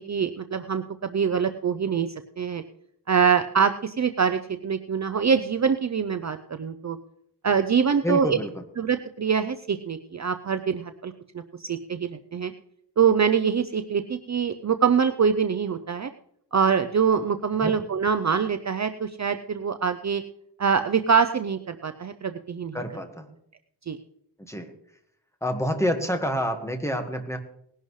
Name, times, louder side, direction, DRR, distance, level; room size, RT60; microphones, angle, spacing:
voice 1, 0.0-2.1 2.4-2.6 3.1-7.0 7.4-8.4 8.8-12.5 13.0-16.1 16.5-20.2 20.6-22.8 23.9-24.0, right 6 dB, 40° right, 9 dB, 0.5 m, -24 dB
voice 2, 8.0-8.6 17.6-17.8 22.7-23.3 24.5-24.7 25.4-27.4, equal, 5° left, 5 dB, 1.5 m, -28 dB
19.0 x 11.0 x 3.2 m, 0.71 s
wide cardioid pair, 125°, 41 cm